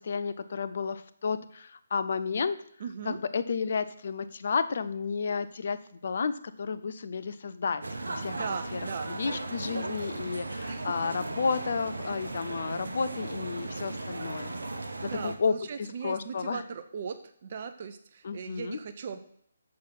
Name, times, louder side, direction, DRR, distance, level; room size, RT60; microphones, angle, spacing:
voice 1, 0.0-2.6 3.0-8.4 8.7-8.8 9.1-14.5 15.0-15.6 16.0-16.6 18.2-18.8, left 5 dB, 50° left, 11 dB, 0.7 m, -32 dB
voice 2, 2.8-3.2 8.3-9.2 10.7-11.0 14.8-19.2, right 6 dB, 45° right, 9 dB, 0.7 m, -39 dB
sound 1, 7.8-15.4, right 2 dB, 70° right, 1.3 m, -36 dB
7.4 x 6.3 x 6.1 m, 0.66 s
figure-of-eight pair, 145°, 0 cm